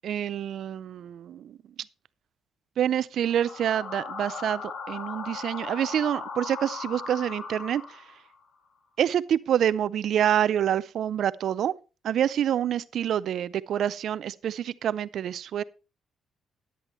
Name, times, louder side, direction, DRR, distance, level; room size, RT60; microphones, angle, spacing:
voice 1, 0.0-1.6 2.8-7.8 9.0-11.7 12.0-15.6, right 10 dB, 70° right, 0.4 m, -27 dB
sound 1, 3.3-8.3, left 5 dB, 65° left, 1.8 m, -38 dB
11.0 x 10.0 x 3.1 m
cardioid pair, 90°, 0 cm